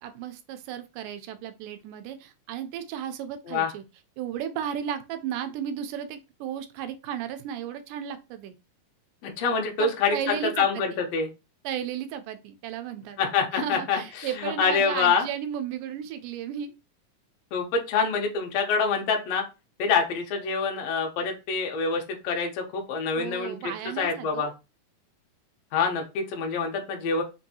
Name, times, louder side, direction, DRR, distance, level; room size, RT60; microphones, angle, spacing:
voice 1, 0.0-3.8 4.2-8.5 9.8-11.0 11.6-13.2 13.5-16.7 23.1-24.5, right 9 dB, 80° right, 9 dB, 2.1 m, -34 dB
voice 2, 9.2-11.3 13.2-15.3 17.5-19.4 19.8-24.5 25.7-27.2, left 5 dB, 70° left, 2 dB, 1.5 m, -26 dB
5.2 x 2.6 x 2.7 m, 0.27 s
omnidirectional pair, 3.9 m